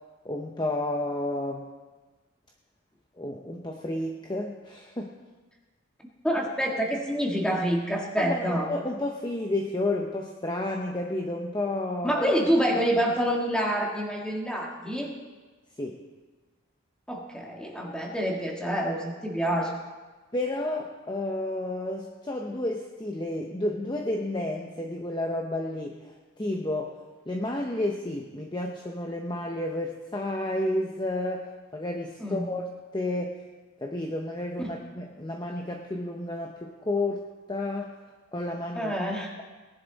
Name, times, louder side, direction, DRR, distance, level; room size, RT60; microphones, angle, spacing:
voice 1, 0.2-1.7 3.2-5.1 8.2-12.3 15.8-16.0 20.3-26.9 27.3-33.4 33.8-37.2 37.5-37.9 38.3-38.9, left 1 dB, 20° left, 1 dB, 0.8 m, -31 dB
voice 2, 6.2-8.7 12.0-15.1 17.1-19.7 32.2-32.5 34.6-34.7 38.8-39.3, equal, 5° left, -1 dB, 1.8 m, -27 dB
18.5 x 11.0 x 4.0 m, 1.3 s
head